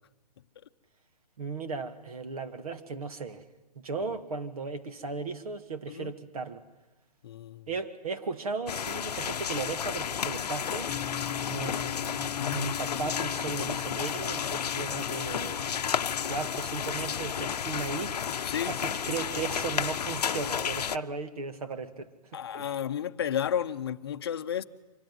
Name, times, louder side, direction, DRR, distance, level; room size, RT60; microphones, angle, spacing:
voice 1, 1.4-3.4 3.8-6.6 7.7-10.9 11.5-15.7 16.3-18.1 18.7-22.7, right 4 dB, 60° right, 1.9 m, -36 dB
voice 2, 7.2-7.7 12.4-12.8 18.4-18.8 22.3-24.6, left 9 dB, 35° left, 0.8 m, -32 dB
sound 1, 8.7-21.0, left 8 dB, 70° left, 0.7 m, -32 dB
sound 2, 10.9-21.0, left 10 dB, 20° left, 1.0 m, -43 dB
25.0 x 19.0 x 9.5 m
hypercardioid pair, 170°, 21 cm